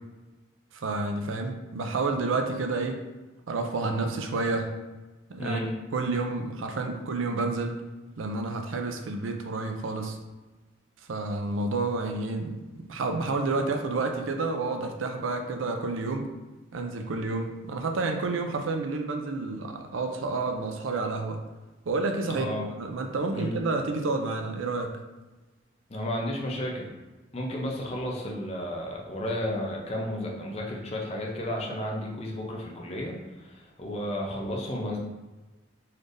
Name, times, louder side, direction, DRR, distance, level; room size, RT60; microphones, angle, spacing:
voice 1, 0.7-3.0 3.5-4.7 5.3-5.6 5.9-7.8 8.2-10.2 11.1-12.6 12.9-16.3 16.7-21.4 21.9-22.5 22.8-25.0, right 3 dB, 80° right, 4 dB, 0.5 m, -29 dB
voice 2, 5.4-5.7 22.3-22.7 23.3-23.6 25.9-26.9 27.3-35.0, left 1 dB, 30° left, -1 dB, 0.6 m, -32 dB
4.1 x 3.3 x 2.6 m, 1.2 s
head